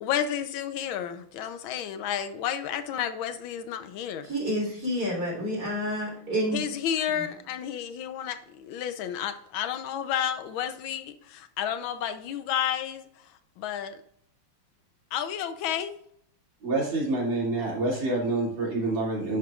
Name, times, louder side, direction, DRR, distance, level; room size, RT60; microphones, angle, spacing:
voice 1, 0.0-4.3 6.5-13.0 13.6-14.0 15.1-15.9, left 9 dB, 85° left, 1.5 m, -31 dB
voice 2, 4.2-6.6, equal, 55° right, 4.0 m, -29 dB
voice 3, 16.6-19.4, right 2 dB, 75° right, 3.3 m, -27 dB
11.0 x 5.8 x 2.4 m
omnidirectional pair, 2.1 m